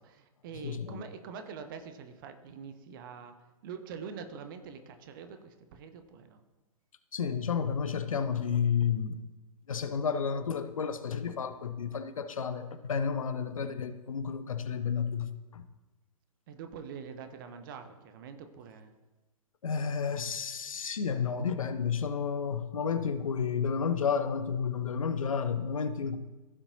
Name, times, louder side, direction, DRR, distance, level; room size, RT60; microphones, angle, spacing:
voice 1, 0.0-3.3 3.6-6.4 16.5-18.9, right 6 dB, 35° right, 8 dB, 0.9 m, -45 dB
voice 2, 0.6-1.1 7.1-9.2 9.7-15.6 19.6-26.2, left 6 dB, 60° left, 11 dB, 0.8 m, -31 dB
16.0 x 7.1 x 2.7 m, 1.1 s
figure-of-eight pair, 120°, 19 cm